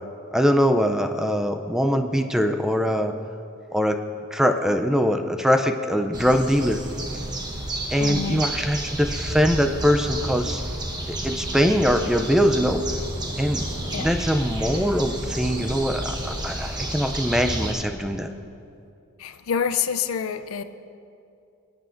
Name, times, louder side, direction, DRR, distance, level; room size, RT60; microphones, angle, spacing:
voice 1, 0.3-3.1 3.7-4.0 4.3-6.8 7.9-10.6 11.1-12.8 13.4-13.6 14.0-18.3, equal, ahead, 6 dB, 0.4 m, -22 dB
sound 1, 6.1-17.7, right 1 dB, 20° right, 1.0 m, -31 dB
voice 2, 8.0-8.5 13.9-14.1 19.2-20.6, left 7 dB, 70° left, 11 dB, 0.5 m, -27 dB
sound 2, 11.5-16.7, equal, 40° left, 2.9 m, -37 dB
20.5 x 9.1 x 2.6 m, 2.5 s
head